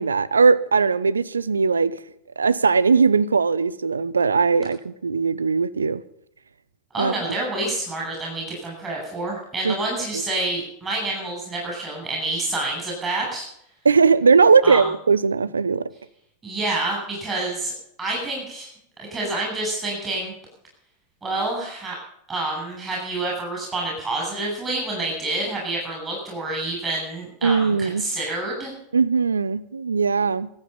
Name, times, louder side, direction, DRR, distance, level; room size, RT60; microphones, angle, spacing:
voice 1, 0.0-1.9 2.4-6.0 7.0-7.1 9.6-9.8 10.1-10.2 13.8-15.9 27.4-28.1 28.9-30.5, right 5 dB, 75° right, 0.7 m, -19 dB
voice 2, 6.9-13.5 14.6-14.8 16.4-17.7 18.0-18.7 19.0-20.3 21.2-22.0 22.3-28.7, right 2 dB, 20° right, 7.1 m, -28 dB
25.0 x 9.0 x 5.5 m
figure-of-eight pair, 90°, 0 cm